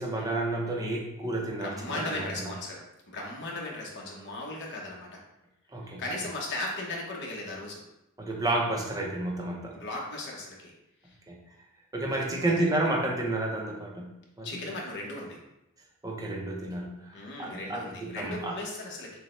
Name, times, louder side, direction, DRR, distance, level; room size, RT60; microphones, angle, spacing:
voice 1, 0.0-2.5 5.7-6.0 8.2-9.8 11.3-11.4 11.9-14.1 14.4-14.5 16.0-18.5, right 2 dB, 15° right, -1 dB, 0.7 m, -31 dB
voice 2, 1.6-2.8 3.1-5.2 5.8-7.8 9.7-10.7 11.0-11.2 12.1-12.9 14.4-15.4 17.1-19.2, left 2 dB, 55° left, -2 dB, 1.1 m, -37 dB
6.4 x 2.3 x 3.1 m, 0.86 s
head